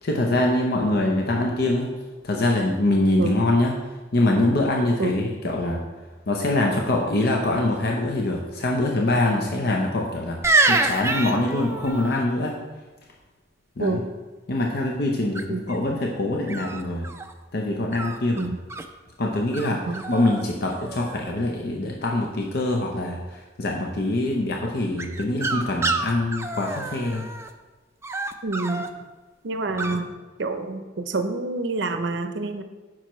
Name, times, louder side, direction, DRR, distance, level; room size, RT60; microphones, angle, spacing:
voice 1, 0.0-1.9 2.2-3.7 4.1-5.8 6.3-10.4 10.7-12.6 13.8-14.0 14.5-17.1 17.5-18.5 19.2-19.8 20.1-27.2 29.7-29.9, left 2 dB, 55° left, 0 dB, 0.7 m, -24 dB
sound 1, 10.4-12.2 15.3-15.8 16.5-17.3 17.9-18.9 19.5-19.7 19.9-20.4 20.7-21.3 25.0-27.5 28.0-28.9 29.8-30.0, right 3 dB, 15° right, 0.3 m, -26 dB
voice 2, 28.4-28.8 29.4-30.1 30.4-32.6, right 3 dB, 65° right, 7 dB, 0.6 m, -27 dB
8.9 x 6.0 x 3.1 m, 1.3 s
head